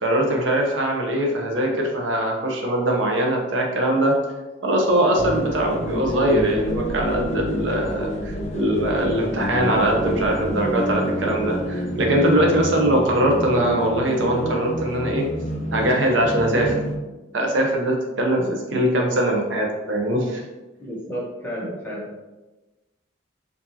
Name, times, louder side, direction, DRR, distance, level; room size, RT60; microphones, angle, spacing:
voice 1, 0.0-4.2 4.6-15.3 15.7-16.8 17.3-20.4, right 1 dB, 75° right, 0 dB, 0.7 m, -21 dB
sound 1, 5.2-17.0, equal, 35° left, 0.5 m, -29 dB
voice 2, 20.8-22.2, equal, 10° left, -7 dB, 1.1 m, -32 dB
4.5 x 2.7 x 2.7 m, 1.1 s
head